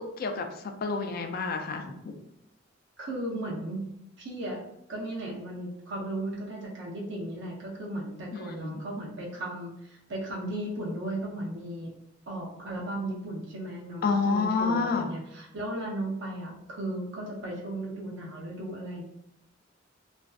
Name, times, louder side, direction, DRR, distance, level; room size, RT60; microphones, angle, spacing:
voice 1, 0.0-2.1 8.3-8.8 14.0-15.1, left 4 dB, 50° left, 5 dB, 0.3 m, -29 dB
voice 2, 3.0-3.9 4.2-4.6 4.9-11.9 12.3-19.0, right 1 dB, 65° right, -4 dB, 0.6 m, -36 dB
2.5 x 2.2 x 2.3 m, 0.81 s
head